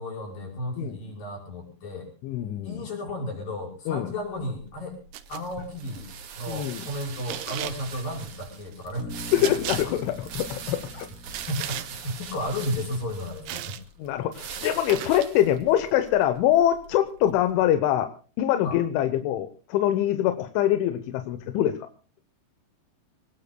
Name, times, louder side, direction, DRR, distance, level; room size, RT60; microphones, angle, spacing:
voice 1, 0.0-2.1 2.6-5.0 5.3-6.1 6.4-9.1 11.5-13.7 18.6-18.8, left 1 dB, 50° left, 2 dB, 7.1 m, -33 dB
voice 2, 2.2-2.8 3.9-4.1 6.5-6.8 9.3-11.1 14.0-18.1 18.4-21.8, left 11 dB, 85° left, 9 dB, 3.4 m, -24 dB
sound 1, 4.3-17.5, right 6 dB, 60° right, 3.3 m, -42 dB
sound 2, 5.1-5.4 7.3-7.8 9.4-9.8 11.3-11.9 13.5-13.8 14.9-15.3, right 13 dB, 90° right, 3.5 m, -34 dB
Bass guitar, 9.0-13.0, left 1 dB, 65° left, 4.7 m, -43 dB
26.5 x 19.0 x 2.2 m, 0.37 s
omnidirectional pair, 5.3 m